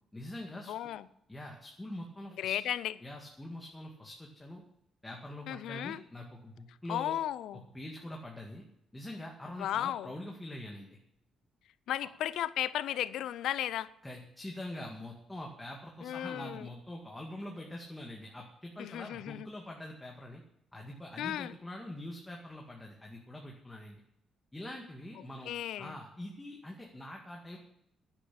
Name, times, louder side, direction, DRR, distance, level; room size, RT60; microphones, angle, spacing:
voice 1, 0.1-0.7 1.3-2.5 3.0-4.6 5.0-7.2 7.7-8.6 8.9-11.0 14.0-20.4 20.7-24.0 24.5-25.5 25.8-27.6, left 1 dB, 10° left, 0 dB, 2.1 m, -44 dB
voice 2, 0.7-1.1 2.4-2.9 5.5-6.0 6.9-7.6 9.6-10.1 11.9-13.9 16.0-16.7 18.8-19.5 21.2-21.5 25.5-25.9, left 12 dB, 80° left, 17 dB, 0.6 m, -35 dB
9.9 x 9.9 x 8.6 m, 0.77 s
cardioid pair, 90°, 0 cm